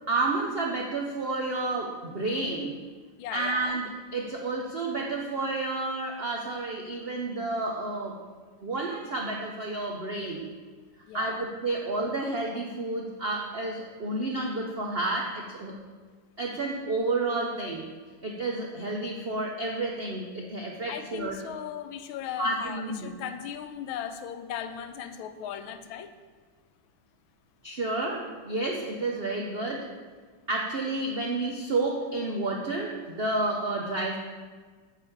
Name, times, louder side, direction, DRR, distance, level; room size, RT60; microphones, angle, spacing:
voice 1, 0.1-2.8 3.3-8.2 8.6-10.4 11.1-15.7 16.4-17.9 18.2-21.4 22.4-23.1 27.6-29.9 30.5-34.2, right 2 dB, 80° right, 0 dB, 0.5 m, -30 dB
voice 2, 3.2-3.8 11.1-11.4 20.9-26.1, left 9 dB, 90° left, 9 dB, 1.4 m, -37 dB
9.1 x 4.1 x 6.9 m, 1.5 s
omnidirectional pair, 2.2 m